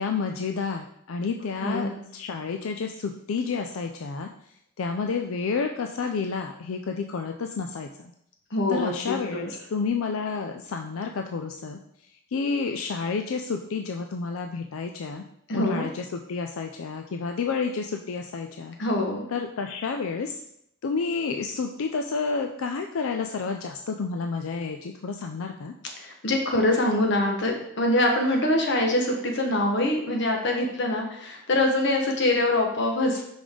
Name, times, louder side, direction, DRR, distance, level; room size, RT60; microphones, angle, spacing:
voice 1, 0.0-4.3 4.8-8.1 8.7-11.8 12.3-15.2 15.5-18.8 19.3-20.4 20.8-25.7, left 5 dB, 85° left, 4 dB, 0.4 m, -30 dB
voice 2, 1.6-1.9 8.5-9.4 15.5-15.9 18.8-19.3 26.0-33.2, left 1 dB, 60° left, 2 dB, 1.1 m, -24 dB
5.3 x 5.1 x 3.7 m, 0.73 s
head